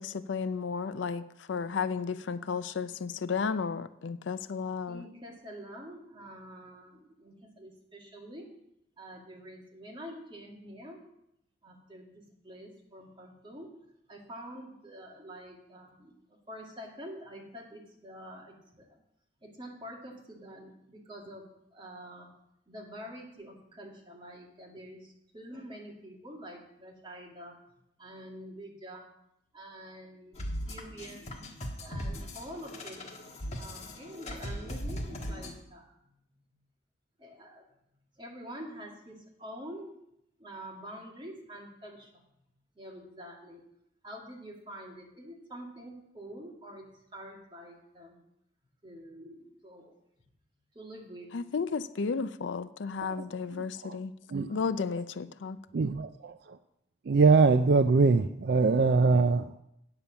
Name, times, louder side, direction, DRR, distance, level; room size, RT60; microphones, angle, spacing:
voice 1, 0.0-5.0 51.3-54.1 54.5-55.6, left 5 dB, 75° left, 14 dB, 0.5 m, -33 dB
voice 2, 4.9-8.5 9.0-11.0 11.6-13.8 14.1-16.1 16.5-18.8 19.4-21.4 21.7-22.3 22.7-27.6 28.0-29.1 29.5-31.4 31.8-33.1 33.4-36.5 37.2-37.6 38.2-40.0 40.4-42.1 42.8-43.6 44.0-48.2 48.8-49.9 50.7-51.3, equal, 25° right, -1 dB, 2.2 m, -46 dB
sound 1, 30.4-35.5, equal, 35° left, 1.4 m, -38 dB
voice 3, 55.7-56.4 57.1-59.5, right 4 dB, 55° right, 11 dB, 0.4 m, -22 dB
8.9 x 6.9 x 7.0 m, 0.80 s
head